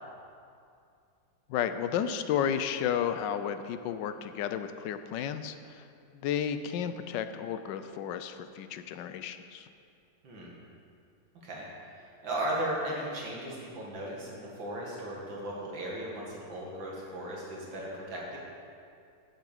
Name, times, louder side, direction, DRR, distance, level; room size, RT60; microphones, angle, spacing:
voice 1, 1.5-5.8 6.2-9.7, left 8 dB, 75° left, 10 dB, 1.2 m, -32 dB
voice 2, 12.2-18.4, right 1 dB, 85° right, -3 dB, 2.7 m, -36 dB
8.2 x 7.2 x 7.9 m, 2.4 s
omnidirectional pair, 2.0 m